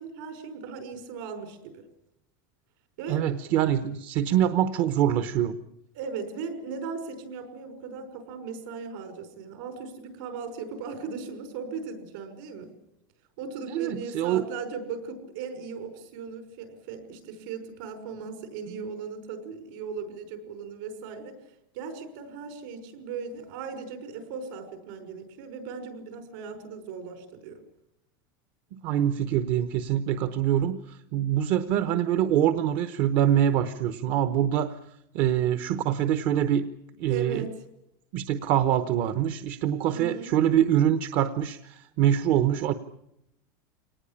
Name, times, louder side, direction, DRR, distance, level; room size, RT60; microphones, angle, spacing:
voice 1, 0.0-1.8 3.0-3.2 5.9-12.7 13.4-27.6 37.1-37.5 39.8-40.3, right 5 dB, 70° right, 8 dB, 5.6 m, -38 dB
voice 2, 3.1-5.6 13.7-14.4 18.7-18.8 28.7-34.8 35.1-36.7 37.0-37.4 38.1-42.7, right 10 dB, 50° right, 11 dB, 1.0 m, -24 dB
24.5 x 19.0 x 10.0 m, 0.84 s
supercardioid pair, 160°, 11 cm